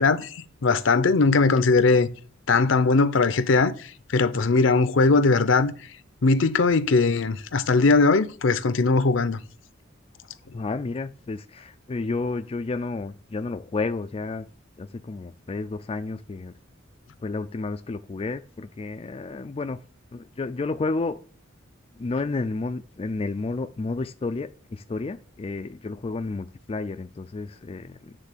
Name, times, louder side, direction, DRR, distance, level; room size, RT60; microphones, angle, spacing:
voice 1, 0.0-2.1 2.5-5.7 6.2-9.4, left 3 dB, 70° left, 0.7 m, -20 dB
voice 2, 10.5-14.5 14.8-16.5 17.2-19.8 20.1-21.2 22.0-28.2, left 3 dB, 30° left, 0.3 m, -31 dB
9.5 x 3.8 x 6.7 m
head